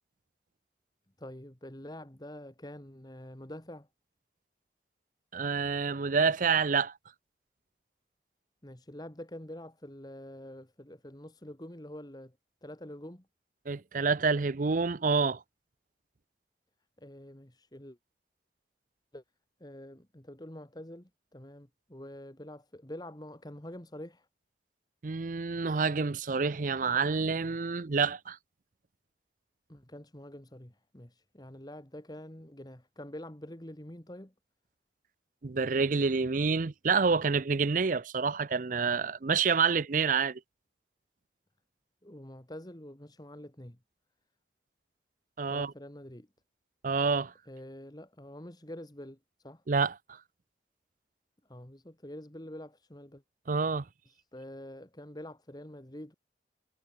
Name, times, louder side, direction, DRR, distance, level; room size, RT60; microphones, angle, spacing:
voice 1, 1.2-3.9 8.6-12.4 12.6-13.3 17.0-18.0 19.1-19.2 19.6-24.3 29.7-34.3 42.0-43.8 45.5-46.3 47.5-49.2 49.4-49.6 51.5-53.2 54.3-56.1, left 1 dB, 25° left, 2.0 m, -46 dB
voice 2, 5.3-6.9 13.7-15.4 25.0-28.4 35.4-40.4 45.4-45.7 46.8-47.3 49.7-49.9 53.5-53.8, right 5 dB, 50° right, 0.6 m, -28 dB
head